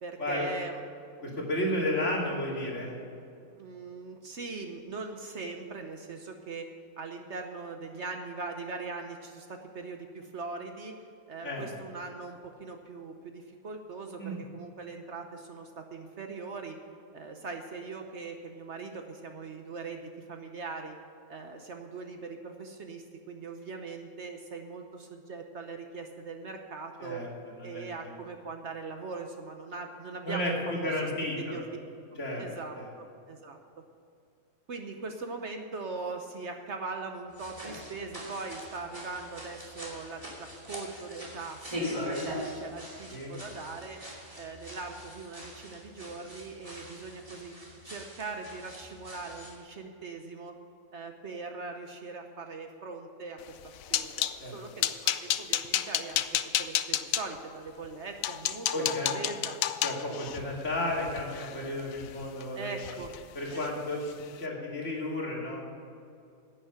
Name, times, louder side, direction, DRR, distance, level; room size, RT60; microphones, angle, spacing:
voice 1, 0.0-0.8 3.6-6.7 7.0-11.0 11.3-16.8 17.1-21.0 21.3-27.2 27.6-30.9 31.4-31.6 32.4-33.6 34.7-44.0 44.4-47.5 47.8-50.5 50.9-53.5 53.9-56.2 56.6-59.6 60.1-60.3 62.6-63.1 63.5-63.6, right 4 dB, 55° right, 5 dB, 1.1 m, -41 dB
voice 2, 1.2-2.9 11.4-11.7 14.2-14.4 27.0-27.3 27.6-28.1 30.2-31.6 32.1-32.4 32.7-32.9 43.1-43.4 54.4-54.6 58.7-59.1 59.8-62.7 63.3-64.0 64.4-65.6, left 1 dB, 50° left, -3 dB, 2.9 m, -32 dB
sound 1, 37.3-49.6, left 1 dB, 25° right, 2.7 m, -41 dB
sound 2, 53.5-54.4 54.8-57.2 57.8-57.9 58.2-62.4 62.8-63.2 63.5-63.7 64.1-64.2, left 11 dB, 70° left, 1.0 m, -31 dB
11.0 x 9.3 x 6.8 m, 2.5 s
omnidirectional pair, 1.5 m